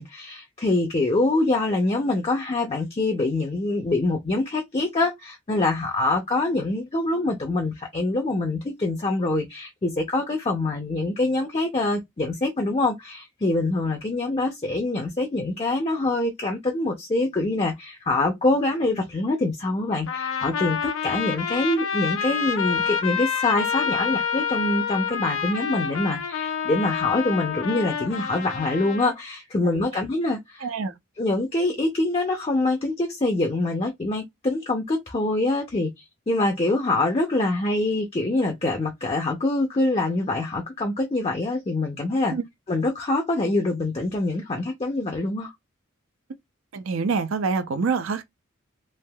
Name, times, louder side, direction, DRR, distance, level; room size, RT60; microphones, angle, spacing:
voice 1, 0.0-30.7 31.2-42.4 42.7-45.5, left 2 dB, 30° left, 0.5 m, -25 dB
Trumpet, 20.1-29.1, left 7 dB, 80° left, 0.5 m, -28 dB
voice 2, 30.6-30.9 42.3-42.4 46.7-48.2, right 5 dB, 80° right, 0.5 m, -25 dB
3.3 x 2.7 x 2.2 m
head